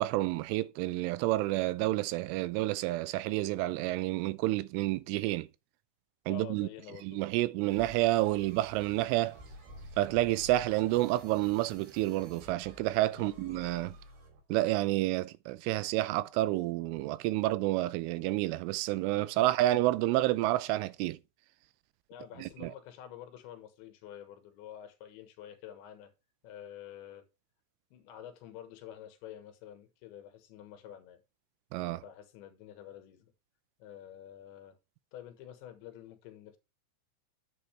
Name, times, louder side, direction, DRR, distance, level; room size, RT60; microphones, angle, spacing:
voice 1, 0.0-5.5 6.3-6.7 7.0-9.4 10.0-13.9 14.5-21.2 22.4-22.7 31.7-32.0, right 17 dB, 85° right, 3.1 m, -29 dB
voice 2, 6.3-7.2 13.1-13.4 19.4-19.5 22.1-26.1 26.4-27.3 27.9-31.2 31.8-33.3 33.8-34.8 35.1-36.6, left 10 dB, 75° left, 3.5 m, -48 dB
sound 1, 7.7-14.4, equal, 60° right, 5.0 m, -51 dB
9.7 x 8.0 x 3.3 m
omnidirectional pair, 5.6 m